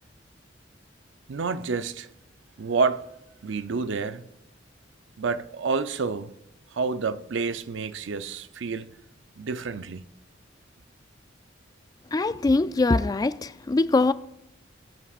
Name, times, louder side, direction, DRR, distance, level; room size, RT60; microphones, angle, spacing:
voice 1, 1.3-2.1 2.6-3.1 3.4-4.3 5.2-6.3 6.7-8.9 9.4-10.0, right 4 dB, 80° right, 0.5 m, -28 dB
voice 2, 12.1-14.1, left 3 dB, 20° left, 0.3 m, -22 dB
20.0 x 8.4 x 2.4 m
head